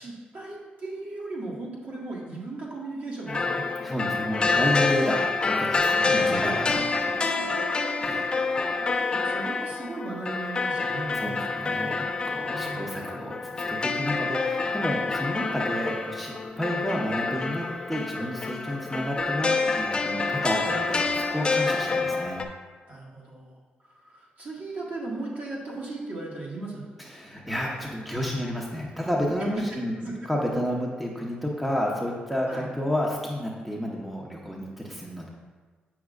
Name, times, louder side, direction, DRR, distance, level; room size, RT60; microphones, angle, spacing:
voice 1, 0.0-3.6 6.0-6.8 7.3-7.6 8.7-11.4 12.5-12.9 16.6-16.8 21.9-22.1 22.9-26.8 30.0-30.1 32.5-32.7, right 2 dB, 55° right, -5 dB, 1.7 m, -37 dB
sound 1, 3.3-22.5, left 4 dB, 30° left, 0.5 m, -27 dB
voice 2, 3.8-6.7 8.0-8.4 11.1-22.4 27.0-29.9 30.3-35.3, equal, 5° right, -2 dB, 0.8 m, -31 dB
7.2 x 6.2 x 2.4 m, 1.4 s
cardioid pair, 95°, 3 cm